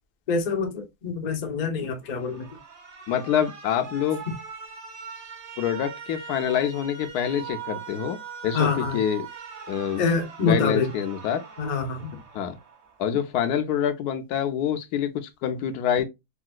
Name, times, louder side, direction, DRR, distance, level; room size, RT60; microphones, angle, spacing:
voice 1, 0.3-2.5 8.5-9.0 10.0-10.9 11.6-12.2, left 4 dB, 45° left, 0.5 m, -26 dB
Alarm, 2.1-13.1, right 7 dB, 60° right, 1.4 m, -41 dB
voice 2, 3.1-4.2 5.6-8.2 8.4-9.3 9.7-10.0 10.4-11.4 12.3-12.6 13.0-16.0, left 9 dB, 80° left, 1.1 m, -26 dB
3.8 x 2.5 x 2.3 m
omnidirectional pair, 1.7 m